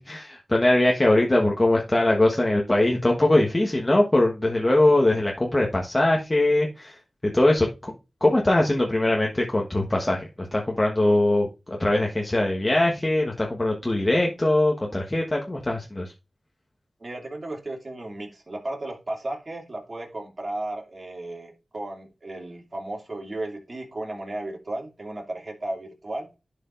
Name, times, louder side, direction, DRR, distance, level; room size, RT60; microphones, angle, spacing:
voice 1, 0.0-7.0 7.2-7.9 8.2-16.1, left 1 dB, 30° left, 0 dB, 1.3 m, -22 dB
voice 2, 17.0-26.4, right 2 dB, 50° right, 0 dB, 2.6 m, -34 dB
11.0 x 5.0 x 2.6 m, 0.27 s
cardioid pair, 40°, 0 cm